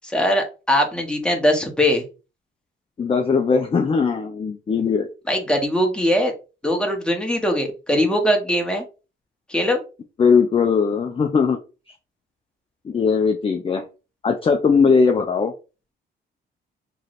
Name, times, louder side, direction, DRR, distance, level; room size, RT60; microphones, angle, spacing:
voice 1, 0.1-2.0 5.3-6.3 6.6-8.8 9.5-9.8, equal, 5° left, 2 dB, 1.1 m, -21 dB
voice 2, 3.0-5.1 10.2-11.6 12.8-13.8 14.2-15.5, left 5 dB, 30° left, 4 dB, 0.5 m, -19 dB
3.1 x 2.7 x 4.1 m, 0.31 s
cardioid pair, 90°, 20 cm